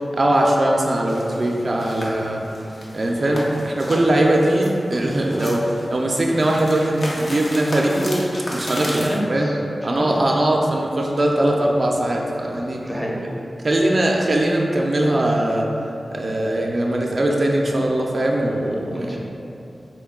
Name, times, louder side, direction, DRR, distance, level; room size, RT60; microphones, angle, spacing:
voice 1, 0.1-2.4 2.9-5.6 5.9-9.0 9.3-9.5 9.8-12.8 13.6-15.7 16.1-19.2, right 1 dB, 55° right, -1 dB, 0.4 m, -20 dB
sound 1, 1.1-9.2, left 1 dB, 65° left, 0.7 m, -34 dB
voice 2, 8.8-10.1 12.8-13.2 18.9-19.2, equal, 10° left, -3 dB, 0.6 m, -28 dB
4.3 x 2.2 x 3.6 m, 2.7 s
wide cardioid pair, 65°, 0 cm